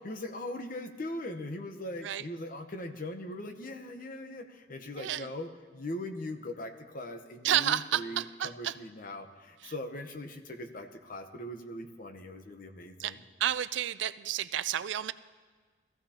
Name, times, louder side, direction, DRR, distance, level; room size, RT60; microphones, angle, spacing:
voice 1, 0.0-13.2, left 1 dB, 45° left, 6 dB, 1.0 m, -40 dB
voice 2, 5.0-5.3 7.4-8.8 9.6-9.7 13.0-15.1, right 11 dB, 65° right, 15 dB, 0.4 m, -31 dB
21.0 x 15.0 x 2.9 m, 1.5 s
head